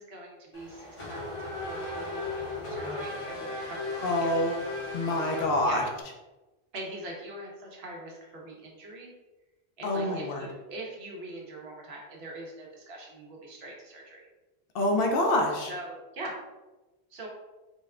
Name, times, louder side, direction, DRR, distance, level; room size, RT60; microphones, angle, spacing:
voice 1, 0.0-4.3 5.6-5.9 6.7-9.1 9.8-14.2 15.7-16.3 17.1-17.3, right 1 dB, 80° right, -1 dB, 1.2 m, -42 dB
Race car auto racing / Accelerating revving vroom, 0.5-6.0, left 2 dB, 35° left, 0.8 m, -36 dB
voice 2, 4.0-4.6 4.9-5.8 9.8-10.5 14.7-15.7, left 1 dB, 70° left, 1 dB, 0.8 m, -26 dB
3.9 x 2.2 x 3.6 m, 1.1 s
omnidirectional pair, 1.0 m